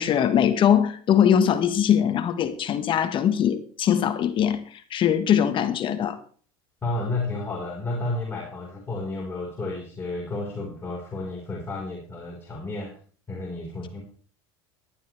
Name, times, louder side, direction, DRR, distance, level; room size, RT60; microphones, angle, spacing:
voice 1, 0.0-6.2, left 9 dB, 40° left, 1.4 m, -21 dB
voice 2, 6.8-13.0 13.3-14.0, left 2 dB, 20° left, 4.4 m, -31 dB
18.5 x 12.0 x 3.3 m
supercardioid pair, 110°, 13 cm